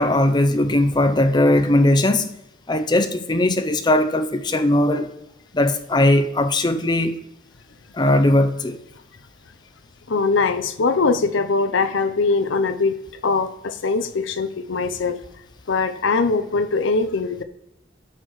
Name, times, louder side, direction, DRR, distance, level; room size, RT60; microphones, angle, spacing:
voice 1, 0.0-2.3 2.7-5.1 5.5-7.2 7.9-8.8, left 1 dB, 25° left, 0.5 m, -19 dB
voice 2, 10.1-13.0 13.2-15.2 15.7-17.4, left 4 dB, 85° left, 0.6 m, -21 dB
8.4 x 6.6 x 3.1 m
head